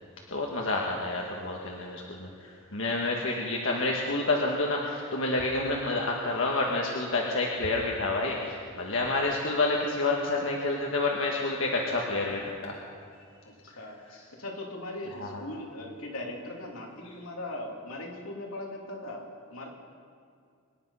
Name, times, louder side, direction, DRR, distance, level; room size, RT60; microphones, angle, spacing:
voice 1, 0.3-12.8 15.2-15.4, left 2 dB, 65° left, -1 dB, 1.4 m, -29 dB
voice 2, 13.4-14.0 14.4-19.7, left 1 dB, 85° left, 0 dB, 2.7 m, -39 dB
24.5 x 10.5 x 5.5 m, 2.2 s
head